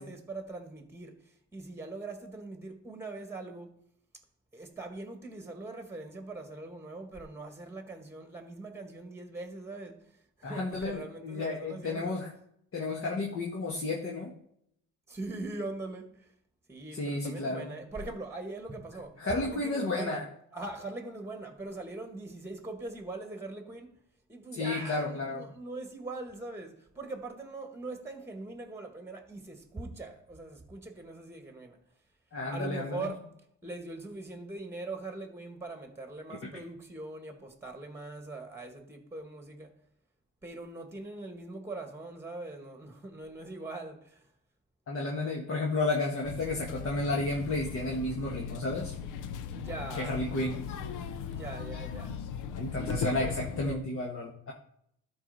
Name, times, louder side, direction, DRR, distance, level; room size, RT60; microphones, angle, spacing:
voice 1, 0.0-3.8 4.5-12.2 15.1-16.3 16.7-20.2 20.5-23.9 24.3-31.8 32.5-33.3 33.6-39.7 40.4-44.3 49.5-50.2 51.3-52.1 53.0-53.8, right 2 dB, 10° right, 1.6 m, -42 dB
voice 2, 10.4-12.3 12.7-14.3 16.9-17.7 19.2-20.2 24.5-25.4 32.3-33.0 36.4-36.5 44.9-48.9 49.9-50.6 52.6-54.5, left 2 dB, 45° left, 1.7 m, -32 dB
sound 1, 46.2-53.8, left 6 dB, 90° left, 0.8 m, -38 dB
12.5 x 4.7 x 4.2 m
cardioid pair, 90°, 30 cm